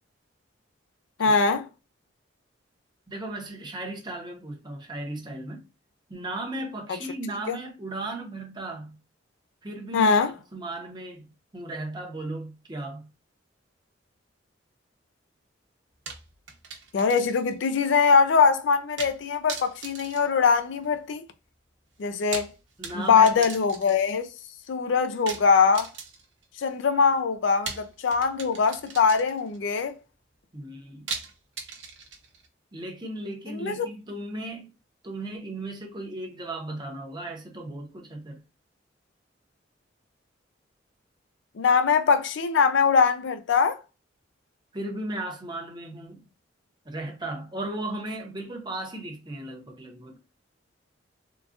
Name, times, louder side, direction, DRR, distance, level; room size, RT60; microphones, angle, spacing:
voice 1, 1.2-1.7 7.5-7.6 9.9-10.3 16.9-21.2 22.0-22.5 22.9-24.3 24.7-25.9 26.6-29.9 33.5-33.9 41.6-43.8, left 5 dB, 70° left, 0.4 m, -22 dB
voice 2, 3.1-5.6 6.1-9.0 9.6-13.1 22.8-23.5 30.5-31.1 32.7-34.7 35.0-38.4 44.7-46.2 46.8-50.2, right 2 dB, 25° right, 0.8 m, -36 dB
sound 1, 16.1-17.6 17.9-18.0 19.0-19.2 19.5-21.0 22.1-24.2 25.3-26.4 27.7-29.6 31.1-32.5, right 5 dB, 65° right, 0.9 m, -39 dB
3.8 x 2.3 x 2.4 m
head